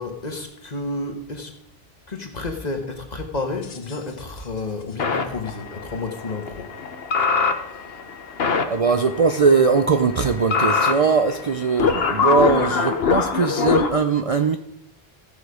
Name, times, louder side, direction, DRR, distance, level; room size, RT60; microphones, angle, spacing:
voice 1, 0.0-1.6 2.1-6.8, left 3 dB, 40° left, 4 dB, 1.4 m, -31 dB
sound 1, 3.6-3.9 5.0-13.9, left 5 dB, 70° left, 1.1 m, -24 dB
voice 2, 8.7-14.6, right 5 dB, 45° right, 7 dB, 0.5 m, -20 dB
15.5 x 6.2 x 4.9 m, 0.76 s
omnidirectional pair, 1.1 m